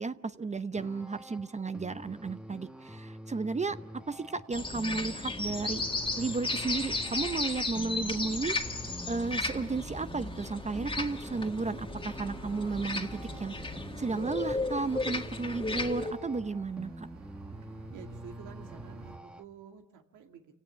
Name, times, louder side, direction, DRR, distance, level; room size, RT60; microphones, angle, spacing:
voice 1, 0.0-3.8 4.1-5.8 6.2-8.5 9.1-13.5 14.0-17.1, right 4 dB, 25° right, 12 dB, 0.8 m, -33 dB
sound 1, 0.8-19.4, equal, 5° right, 1.2 m, -47 dB
sound 2, 4.5-16.1, left 2 dB, 15° left, 2.0 m, -35 dB
sound 3, 5.6-19.2, right 6 dB, 60° right, 1.8 m, -51 dB
voice 2, 17.9-20.5, right 7 dB, 90° right, 5 dB, 2.1 m, -50 dB
28.0 x 17.5 x 9.1 m, 1.1 s
cardioid pair, 90°, 30 cm